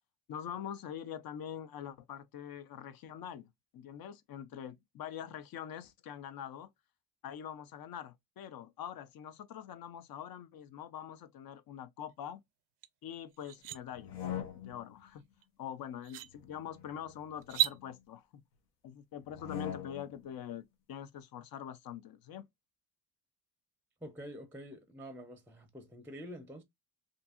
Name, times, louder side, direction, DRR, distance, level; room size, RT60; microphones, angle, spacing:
voice 1, 0.3-3.5 3.7-6.7 7.2-12.4 13.0-14.2 14.6-15.2 15.6-18.4 18.8-22.5, left 9 dB, 60° left, 0.6 m, -44 dB
sound 1, 12.8-12.9 13.3-13.8 15.4-15.5 16.0-16.3 17.4-17.8, right 13 dB, 80° right, 0.5 m, -32 dB
sound 2, 13.9-15.0 16.3-17.9 19.2-20.2, left 10 dB, 85° left, 0.9 m, -43 dB
voice 2, 24.0-26.6, equal, 5° right, 0.5 m, -47 dB
2.7 x 2.6 x 2.3 m
cardioid pair, 90°, 41 cm